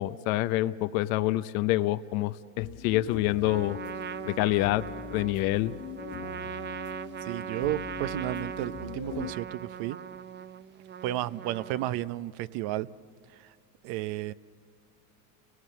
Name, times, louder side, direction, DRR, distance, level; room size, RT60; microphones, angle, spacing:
voice 1, 0.0-3.8 4.3-4.8 5.1-5.7, left 16 dB, 80° left, 0.7 m, -27 dB
sound 1, 2.6-9.3, left 8 dB, 45° left, 1.3 m, -41 dB
Trumpet, 3.4-12.1, right 8 dB, 25° right, 0.5 m, -40 dB
voice 2, 7.2-10.0 11.0-12.9 13.3-13.5 13.8-14.3, right 14 dB, 65° right, 0.8 m, -32 dB
30.0 x 18.0 x 7.5 m
supercardioid pair, 100°, 41 cm